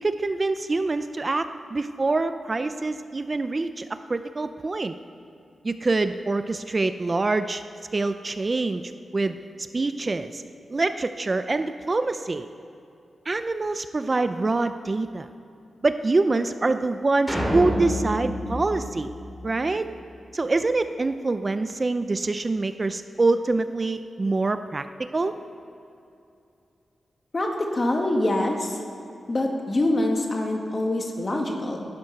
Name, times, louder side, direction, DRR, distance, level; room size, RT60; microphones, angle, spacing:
voice 1, 0.0-4.9 5.6-7.6 7.9-8.8 9.1-9.3 9.7-10.4 10.7-12.5 13.3-15.3 15.8-19.1 19.4-19.9 20.3-25.3, right 3 dB, 35° right, 10 dB, 0.5 m, -25 dB
sound 1, 17.3-19.8, equal, 5° right, 2.8 m, -28 dB
voice 2, 27.3-28.8 29.3-31.9, left 1 dB, 35° left, 1 dB, 2.0 m, -25 dB
16.5 x 11.5 x 5.8 m, 2.7 s
wide cardioid pair, 100°, 0 cm